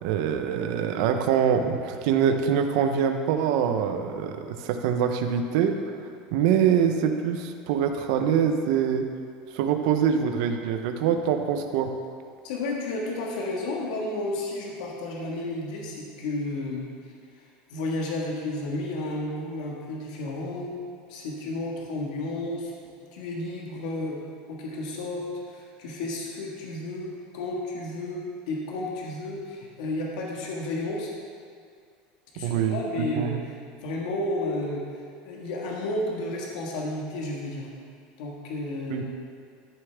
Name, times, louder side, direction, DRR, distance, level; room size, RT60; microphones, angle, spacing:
voice 1, 0.0-5.8 6.3-9.1 9.5-11.9 32.4-33.4 38.9-39.0, right 8 dB, 65° right, 6 dB, 0.8 m, -24 dB
voice 2, 12.4-16.8 17.7-20.7 21.1-22.7 23.1-24.2 24.5-31.1 32.3-34.8 35.2-37.7 38.2-39.0, left 2 dB, 80° left, -2 dB, 1.6 m, -32 dB
13.0 x 7.2 x 3.5 m, 2.2 s
supercardioid pair, 165°, 4 cm